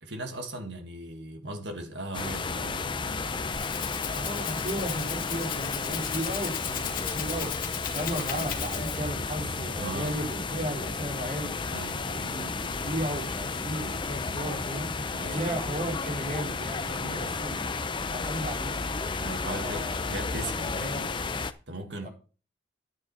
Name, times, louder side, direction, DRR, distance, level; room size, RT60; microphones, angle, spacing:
voice 1, 0.0-3.3 9.8-10.2 11.7-12.1 15.1-15.5 16.8-17.5 19.2-20.9 21.7-22.1, right 1 dB, 65° right, 2.0 m, -38 dB
sound 1, 2.1-21.5, left 4 dB, 25° left, 0.6 m, -32 dB
Rattle (instrument), 3.2-9.2, left 9 dB, 45° left, 1.9 m, -37 dB
voice 2, 4.1-11.6 12.0-14.9 15.3-17.7 18.1-18.8 19.4-20.2 20.7-21.1 22.0-22.1, right 1 dB, 40° right, 4.4 m, -35 dB
10.0 x 8.8 x 4.3 m
head